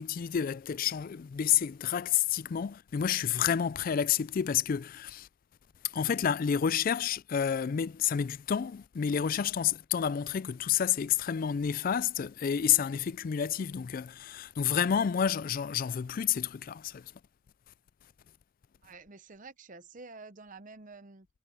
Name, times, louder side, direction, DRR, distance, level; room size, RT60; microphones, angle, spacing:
voice 1, 0.0-5.3 5.9-17.0, left 8 dB, 40° left, 0.3 m, -29 dB
voice 2, 18.8-21.3, right 3 dB, 40° right, 0.8 m, -49 dB
head